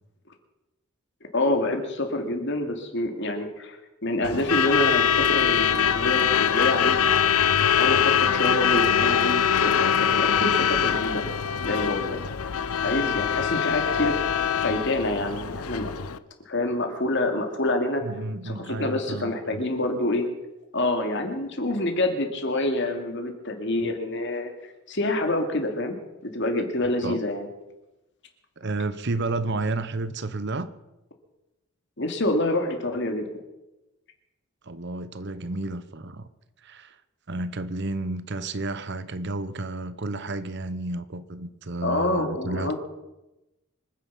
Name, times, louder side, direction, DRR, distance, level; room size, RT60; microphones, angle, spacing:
voice 1, 1.3-7.1 7.7-11.2 11.6-12.2 12.8-14.2 14.5-15.9 16.5-18.0 18.4-20.3 20.7-24.5 24.9-26.0 26.2-27.5 32.0-33.3 41.8-42.8, left 1 dB, 55° left, 2.5 m, -27 dB
Truck / Alarm, 4.2-16.2, left 8 dB, 80° left, 0.7 m, -23 dB
voice 2, 18.0-19.6 27.0-27.2 28.6-30.7 34.7-36.3 36.6-36.9 37.3-42.8, right 2 dB, 50° right, 0.8 m, -31 dB
25.5 x 9.8 x 5.9 m
head